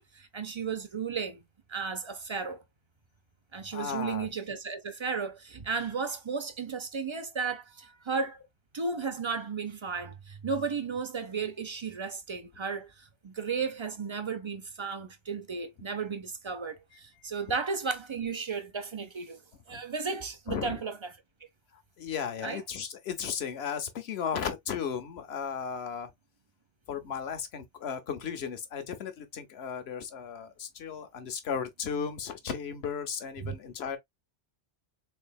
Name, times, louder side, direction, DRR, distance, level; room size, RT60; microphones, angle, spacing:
voice 1, 0.0-1.4 1.7-2.6 3.5-8.4 8.7-19.4 19.7-21.1 22.4-22.6 33.4-33.6, right 5 dB, 35° right, 0.5 m, -34 dB
voice 2, 3.7-4.3 19.7-19.8 20.5-20.8 22.0-26.1 26.9-34.0, left 7 dB, 65° left, 1.0 m, -35 dB
3.7 x 3.5 x 2.3 m
omnidirectional pair, 1.2 m